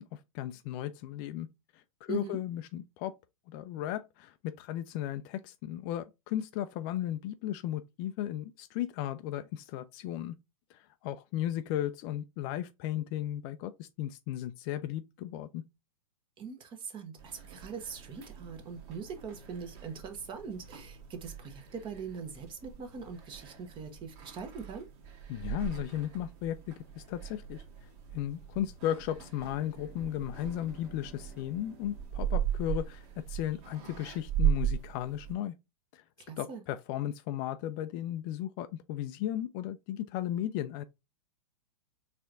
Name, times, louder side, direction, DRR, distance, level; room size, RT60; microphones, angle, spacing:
voice 1, 0.0-1.5 1.7-3.1 3.5-10.4 10.7-15.6 25.3-27.6 28.1-35.5 35.9-36.0 36.4-40.8, left 12 dB, 35° left, 0.4 m, -35 dB
voice 2, 2.1-2.4 16.4-24.9 36.2-36.6, right 6 dB, 25° right, 1.1 m, -42 dB
sound 1, 17.2-35.3, right 10 dB, 45° right, 1.6 m, -38 dB
Bowed string instrument, 28.7-33.0, right 1 dB, 5° right, 0.6 m, -58 dB
4.5 x 3.4 x 2.5 m
hypercardioid pair, 125°, 18 cm